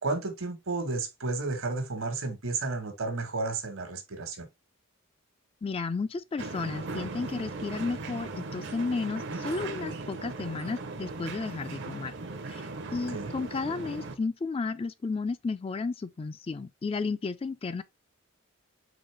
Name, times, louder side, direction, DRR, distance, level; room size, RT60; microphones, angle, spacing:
voice 1, 0.0-4.5 9.3-9.4 13.1-13.3, right 3 dB, 75° right, 1.3 m, -32 dB
voice 2, 5.6-12.1 12.5-17.8, left 4 dB, 25° left, 0.3 m, -33 dB
sound 1, 6.4-14.2, right 3 dB, 60° right, 0.7 m, -38 dB
4.0 x 3.7 x 3.3 m
head